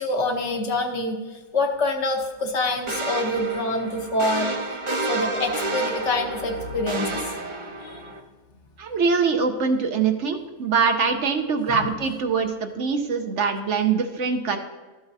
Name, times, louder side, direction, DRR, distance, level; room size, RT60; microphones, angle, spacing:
voice 1, 0.0-4.6 5.1-7.2 7.8-8.0 11.7-11.9, left 2 dB, 60° left, 4 dB, 1.1 m, -26 dB
sound 1, 2.9-8.2, right 2 dB, 30° right, 0.6 m, -30 dB
voice 2, 8.8-14.6, right 5 dB, 65° right, 6 dB, 1.0 m, -23 dB
13.0 x 8.0 x 2.7 m, 1.3 s
omnidirectional pair, 1.5 m